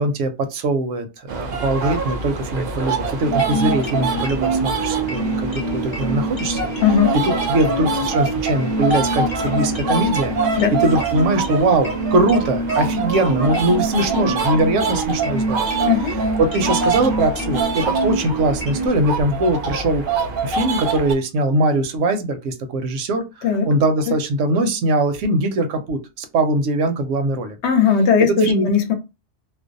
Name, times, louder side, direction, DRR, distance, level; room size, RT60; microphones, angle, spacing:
voice 1, 0.0-6.7 7.1-7.2 7.5-10.4 10.7-15.7 16.0-20.0 20.4-23.3 23.6-27.6 28.3-28.7, right 2 dB, 80° right, 1.0 m, -21 dB
sound 1, 1.3-21.1, right 4 dB, 60° right, 0.6 m, -25 dB
sound 2, 3.2-18.9, right 1 dB, 30° left, 0.4 m, -26 dB
voice 2, 6.8-7.1 10.6-10.7 15.9-16.2 23.4-23.7 27.6-28.9, left 6 dB, 70° left, 0.9 m, -17 dB
2.5 x 2.0 x 2.5 m
omnidirectional pair, 1.3 m